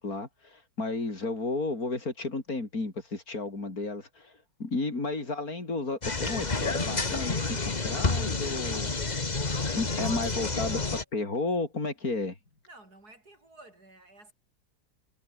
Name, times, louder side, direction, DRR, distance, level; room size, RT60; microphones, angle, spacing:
voice 1, 0.0-8.9 9.7-12.4, left 3 dB, 55° left, 5.1 m, -33 dB
sound 1, 6.0-11.0, left 3 dB, 25° left, 1.7 m, -29 dB
voice 2, 12.7-14.3, right 2 dB, 65° right, 7.6 m, -53 dB
omnidirectional pair, 1.8 m